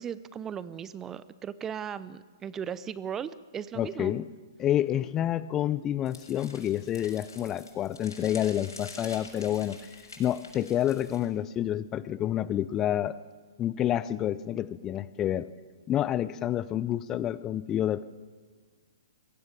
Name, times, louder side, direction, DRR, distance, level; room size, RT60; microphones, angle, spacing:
voice 1, 0.0-4.1, right 8 dB, 15° right, 17 dB, 0.7 m, -37 dB
voice 2, 3.8-4.2 4.6-9.8 10.2-13.2 13.6-15.5 15.9-18.0, left 11 dB, 20° left, 17 dB, 0.7 m, -28 dB
sound 1, 6.1-11.3, left 3 dB, 75° left, 6.9 m, -48 dB
25.5 x 23.0 x 6.9 m, 1.4 s
figure-of-eight pair, 115°, 2 cm